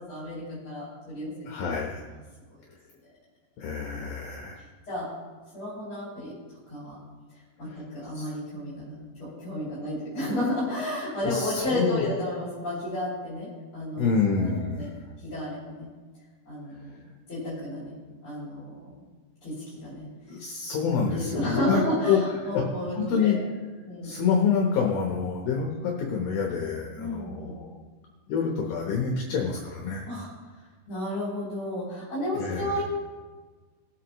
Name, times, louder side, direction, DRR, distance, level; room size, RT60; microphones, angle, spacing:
voice 1, 0.0-1.3 2.0-2.2 4.9-5.1 5.5-6.3 6.7-7.0 7.6-13.5 13.7-14.1 14.4-14.5 14.8-14.9 15.2-15.9 16.5-17.0 17.3-17.9 18.2-18.9 19.4-20.1 21.1-23.4 23.8-24.1 27.0-27.5 30.0-30.3 30.9-32.8, left 1 dB, 30° left, -9 dB, 3.6 m, -32 dB
voice 2, 1.5-1.9 3.6-4.6 8.1-8.3 11.3-12.0 14.0-14.9 20.3-22.2 22.5-22.6 23.0-23.4 24.0-27.7 28.3-30.1 32.4-32.7, left 6 dB, 70° left, 0 dB, 2.5 m, -27 dB
21.5 x 8.2 x 3.1 m, 1.4 s
omnidirectional pair, 5.2 m